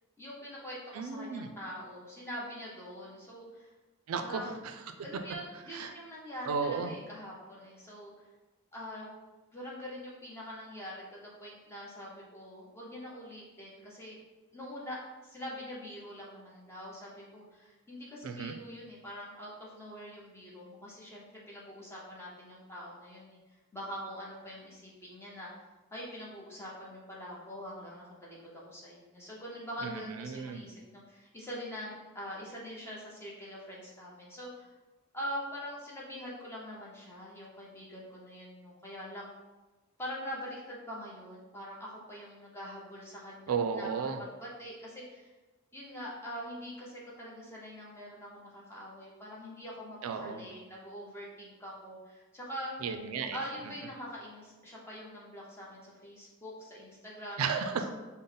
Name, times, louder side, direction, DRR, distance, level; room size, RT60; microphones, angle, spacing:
voice 1, 0.2-3.7 4.2-4.7 5.0-8.1 8.7-9.2 9.5-14.2 14.5-23.4 23.7-25.5 25.9-34.7 35.1-39.3 40.0-45.3 45.7-52.7 53.3-57.4, equal, 10° left, -6 dB, 0.9 m, -44 dB
voice 2, 0.9-1.5 4.1-4.5 5.7-5.9 6.5-6.9 18.2-18.6 29.8-30.6 43.5-44.2 50.0-50.5 52.8-53.4 57.4-57.9, right 5 dB, 80° right, 7 dB, 0.4 m, -34 dB
5.2 x 2.1 x 3.8 m, 1.2 s
head